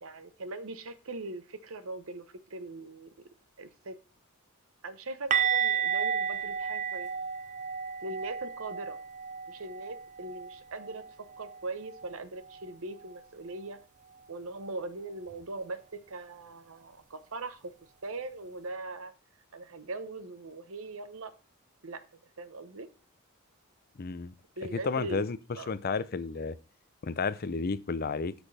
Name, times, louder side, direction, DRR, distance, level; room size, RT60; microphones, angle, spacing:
voice 1, 0.0-3.1 3.6-4.0 4.8-7.1 8.0-9.0 9.5-13.8 14.3-19.1 19.5-21.4 21.8-22.0 22.4-22.9 24.6-25.2 25.6-25.7, right 2 dB, 65° right, 1.0 m, -41 dB
sound 1, 5.3-11.1 11.3-11.6 11.9-12.1 15.3-15.4, right 7 dB, 35° right, 0.5 m, -32 dB
voice 2, 24.0-24.3 24.7-25.4 25.7-26.6 27.0-28.3, left 4 dB, 45° left, 0.5 m, -32 dB
12.5 x 6.1 x 3.3 m
head